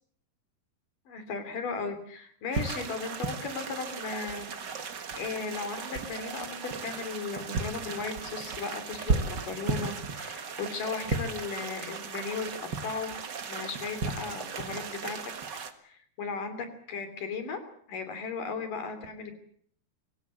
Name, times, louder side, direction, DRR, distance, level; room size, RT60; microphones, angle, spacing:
voice 1, 1.1-4.5 5.1-12.5 12.8-13.1 13.5-15.2 15.8-17.6 17.9-19.4, left 4 dB, 55° left, 9 dB, 4.5 m, -36 dB
sound 1, 2.5-15.7, right 4 dB, 50° right, 1.3 m, -35 dB
24.5 x 18.0 x 8.2 m, 0.62 s
omnidirectional pair, 4.6 m